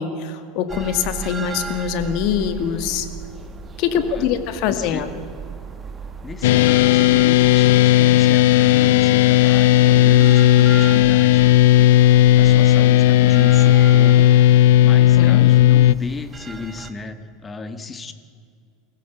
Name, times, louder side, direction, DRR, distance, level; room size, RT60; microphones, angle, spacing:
voice 1, 0.0-3.1 3.8-5.1 15.2-15.5, left 8 dB, 55° left, 9 dB, 2.1 m, -23 dB
sound 1, 0.7-16.9, right 5 dB, 20° right, 1.6 m, -36 dB
voice 2, 3.9-5.1 6.2-11.4 12.4-18.1, left 3 dB, 20° left, 10 dB, 1.5 m, -35 dB
sound 2, 6.4-15.9, left 13 dB, 80° left, 0.4 m, -13 dB
24.5 x 15.5 x 8.3 m, 2.3 s
supercardioid pair, 140°, 0 cm